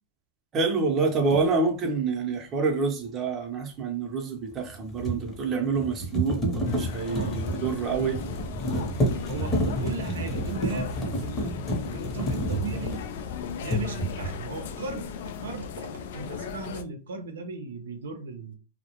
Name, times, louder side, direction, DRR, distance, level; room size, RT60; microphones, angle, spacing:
voice 1, 0.5-8.2, right 4 dB, 30° right, 0.7 m, -27 dB
sound 1, 1.3-1.5 4.5-13.3 13.6-14.4, equal, 25° left, 0.8 m, -30 dB
sound 2, 6.6-16.8, left 6 dB, 70° left, 0.3 m, -37 dB
voice 2, 9.3-10.9 11.2-13.0 13.6-15.1 15.4-18.6, right 4 dB, 90° right, 0.5 m, -37 dB
2.3 x 2.0 x 2.9 m
hypercardioid pair, 130°, 0 cm